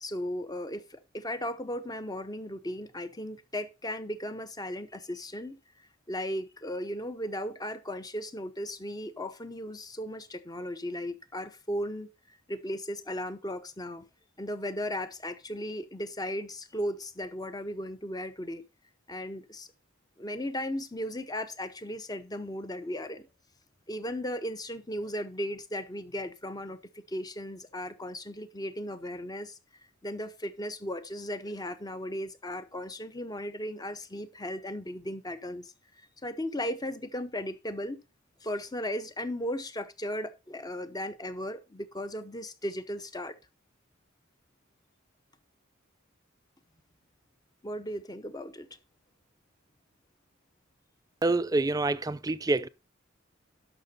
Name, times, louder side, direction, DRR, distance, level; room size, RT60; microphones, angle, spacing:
voice 1, 0.0-5.6 6.1-12.1 12.5-14.1 14.4-18.7 19.1-19.7 20.2-23.3 23.9-29.6 30.0-35.7 36.2-38.0 38.4-43.3 47.6-48.7, equal, 20° left, 0.8 m, -36 dB
voice 2, 51.2-52.7, right 2 dB, 15° right, 0.4 m, -27 dB
12.0 x 5.9 x 4.2 m
head